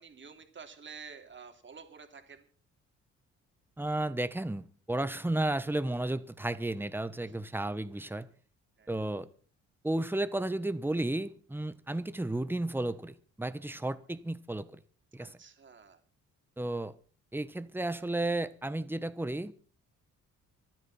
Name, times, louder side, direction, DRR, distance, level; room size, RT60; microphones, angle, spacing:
voice 1, 0.0-2.5 7.3-7.4 8.8-8.9 15.2-16.0, right 5 dB, 40° right, 3.2 m, -50 dB
voice 2, 3.8-8.3 8.9-9.3 9.8-14.8 15.1-15.3 16.6-16.9 17.3-19.5, right 1 dB, 5° right, 1.2 m, -33 dB
26.0 x 9.2 x 4.4 m
cardioid pair, 90°, 30 cm